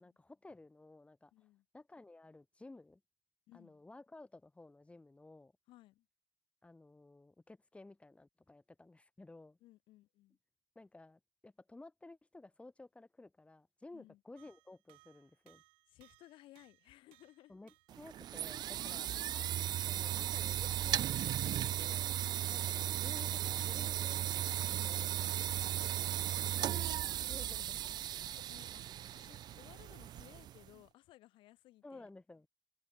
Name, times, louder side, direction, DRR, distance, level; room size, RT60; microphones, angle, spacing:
voice 1, 0.0-1.3 1.7-3.0 3.5-5.5 6.6-9.6 10.8-15.6 17.5-19.1 19.9-22.1 22.5-26.0 27.1-27.8 31.8-32.5, left 2 dB, 15° left, 4.1 m, -55 dB
voice 2, 1.3-1.6 3.5-3.8 5.7-6.0 9.6-10.4 13.9-14.2 15.9-17.6 18.9-19.2 27.6-27.8 28.3-28.8 29.1-32.1, left 16 dB, 65° left, 6.5 m, -60 dB
sound 1, 14.3-26.6, right 24 dB, 75° right, 5.9 m, -69 dB
sound 2, 17.9-30.7, right 11 dB, 50° right, 0.6 m, -36 dB
supercardioid pair, 85°, 9 cm